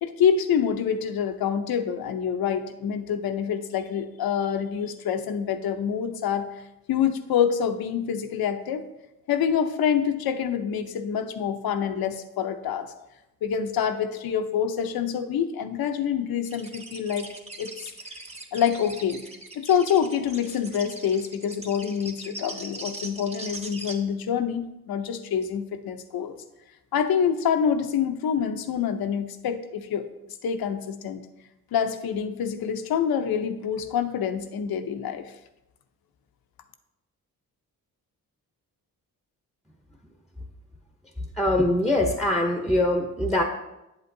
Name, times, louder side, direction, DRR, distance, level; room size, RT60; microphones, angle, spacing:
voice 1, 0.0-6.5 6.9-8.9 9.3-12.9 13.4-17.3 17.6-17.9 18.5-19.2 19.5-26.4 26.9-30.1 30.4-31.2 31.7-35.3, left 8 dB, 80° left, 8 dB, 0.7 m, -26 dB
sound 1, 16.4-23.9, right 2 dB, 20° right, 1.1 m, -40 dB
voice 2, 41.4-43.4, left 1 dB, ahead, 2 dB, 0.8 m, -23 dB
8.2 x 8.0 x 2.7 m, 0.94 s
cardioid pair, 90°, 35 cm